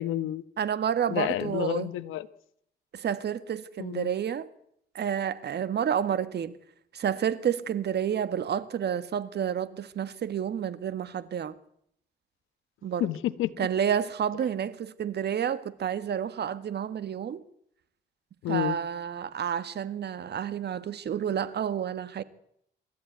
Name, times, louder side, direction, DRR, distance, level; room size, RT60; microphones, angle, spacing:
voice 1, 0.0-0.4 1.1-2.3 3.8-4.1 13.0-13.7 18.4-18.8, left 13 dB, 90° left, 1.2 m, -30 dB
voice 2, 0.6-1.9 2.9-4.5 5.0-6.5 6.9-11.5 12.8-13.1 13.6-17.4 18.5-22.2, right 8 dB, 55° right, 1.8 m, -30 dB
27.0 x 13.5 x 9.4 m
cardioid pair, 90°, 20 cm